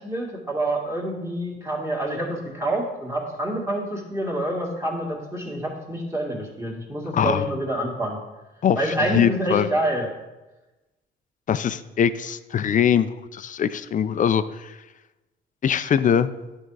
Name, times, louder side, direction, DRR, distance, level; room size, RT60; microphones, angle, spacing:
voice 1, 0.0-8.2 8.8-10.1, right 1 dB, 15° right, -2 dB, 1.9 m, -27 dB
voice 2, 7.1-7.4 8.6-9.7 11.5-14.8 15.6-16.3, left 8 dB, 40° left, 13 dB, 0.4 m, -22 dB
10.5 x 3.7 x 4.7 m, 1.1 s
cardioid pair, 90°, 20 cm